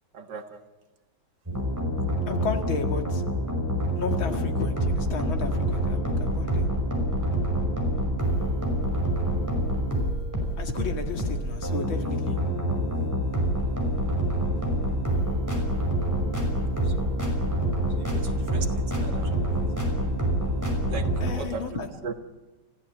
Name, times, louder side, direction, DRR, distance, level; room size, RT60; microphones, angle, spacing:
voice 1, 0.1-0.6 16.7-17.1 18.0-19.7 20.9-21.1 21.3-22.1, right 5 dB, 60° right, 7 dB, 2.1 m, -38 dB
sound 1, 1.5-21.3, equal, 10° right, 5.6 m, -26 dB
voice 2, 2.3-3.2 3.9-6.7 10.6-12.4 21.2-21.9, left 4 dB, 90° left, 5 dB, 2.8 m, -33 dB
29.0 x 15.0 x 8.9 m, 1.2 s
omnidirectional pair, 2.1 m